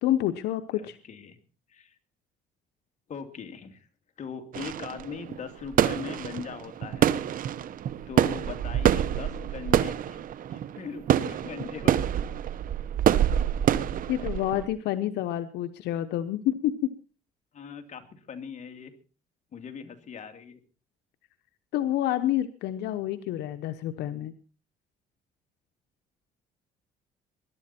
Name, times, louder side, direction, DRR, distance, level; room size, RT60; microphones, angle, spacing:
voice 1, 0.0-1.0 14.1-16.9 21.7-24.3, left 12 dB, 80° left, 10 dB, 0.9 m, -28 dB
voice 2, 0.8-1.4 1.7-1.9 3.1-3.9 4.2-7.1 8.1-10.2 10.5-11.9 17.5-18.9 19.5-20.6, left 6 dB, 45° left, 7 dB, 2.6 m, -40 dB
sound 1, 4.5-14.7, right 10 dB, 55° right, 0.9 m, -26 dB
21.5 x 11.5 x 4.3 m, 0.36 s
cardioid pair, 110°, 17 cm